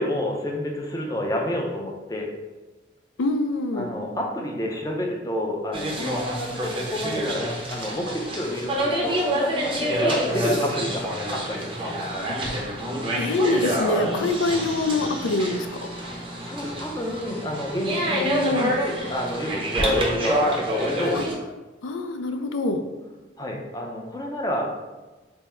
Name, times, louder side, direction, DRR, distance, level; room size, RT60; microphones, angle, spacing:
voice 1, 0.0-2.3 3.7-12.0 16.4-21.2 23.4-24.7, left 1 dB, 20° left, 0 dB, 0.4 m, -29 dB
voice 2, 3.2-3.9 12.2-12.4 13.2-15.7 18.2-18.8 21.1-21.3 21.8-22.8, left 2 dB, 85° left, 7 dB, 0.4 m, -25 dB
sound 1, 5.7-21.3, equal, 25° right, 0.5 m, -27 dB
3.4 x 2.0 x 4.2 m, 1.2 s
head